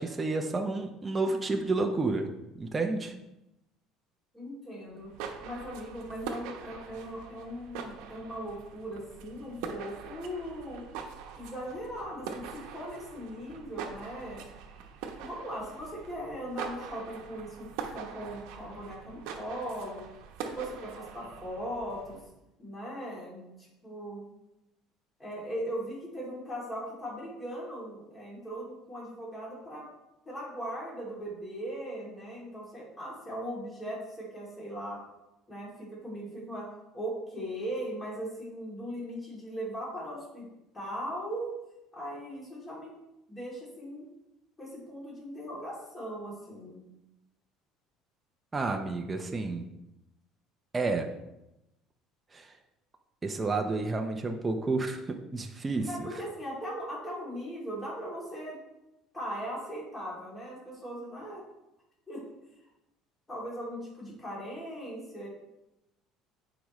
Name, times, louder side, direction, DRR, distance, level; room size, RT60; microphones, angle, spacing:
voice 1, 0.0-2.3 2.6-3.1 48.5-49.6 50.7-51.1 52.3-52.5 53.2-56.1, right 3 dB, 15° right, 3 dB, 0.6 m, -30 dB
voice 2, 4.3-5.1 5.4-10.8 11.3-14.5 15.2-20.0 20.4-22.2 22.6-24.3 25.2-29.8 30.2-35.0 35.5-36.7 36.9-40.4 40.7-41.5 41.9-42.9 43.3-44.1 44.6-46.8 55.8-58.6 59.1-61.4 62.1-62.2 63.3-65.3, equal, 15° left, -5 dB, 2.9 m, -39 dB
sound 1, 4.9-22.3, right 6 dB, 80° right, 0.9 m, -43 dB
9.9 x 5.0 x 3.1 m, 0.91 s
cardioid pair, 135°, 0 cm